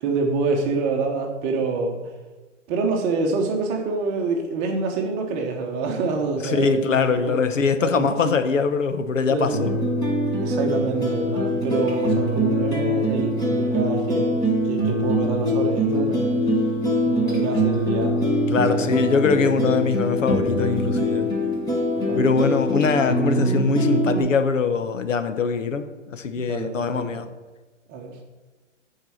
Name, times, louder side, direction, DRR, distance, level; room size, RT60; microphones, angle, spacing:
voice 1, 0.0-2.0 2.7-7.4 7.8-8.3 9.3-9.8 10.4-14.4 14.7-16.3 17.1-18.2 18.5-19.0 21.9-22.8 26.3-27.3 27.9-28.1, right 4 dB, 20° right, 2 dB, 1.0 m, -27 dB
voice 2, 6.4-9.7 18.5-21.3 22.2-27.3, left 5 dB, 80° left, 9 dB, 1.0 m, -22 dB
sound 1, 9.5-24.2, equal, 10° left, 1.3 m, -23 dB
10.5 x 4.7 x 6.3 m, 1.2 s
hypercardioid pair, 150°, 37 cm